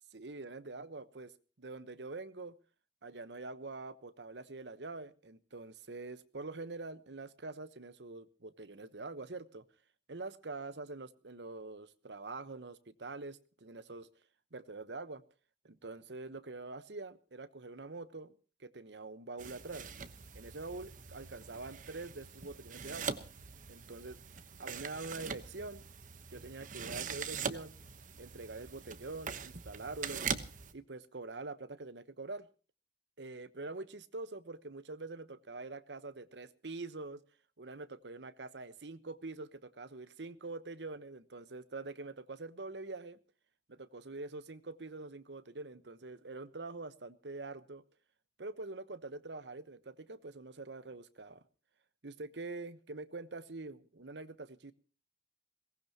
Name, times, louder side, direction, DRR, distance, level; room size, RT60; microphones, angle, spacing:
voice 1, 0.1-1.3 1.6-2.6 3.0-9.6 10.1-14.1 14.5-15.2 15.6-18.3 18.6-19.9 20.3-23.2 23.7-24.2 24.6-25.9 26.3-27.7 28.2-30.2 30.7-32.5 33.2-37.2 37.6-43.2 43.7-47.8 48.4-51.4 52.0-54.7, right 3 dB, 85° right, 14 dB, 1.1 m, -45 dB
sound 1, 19.4-30.7, right 6 dB, 45° right, 1.0 m, -42 dB
22.0 x 18.5 x 2.9 m, 0.35 s
head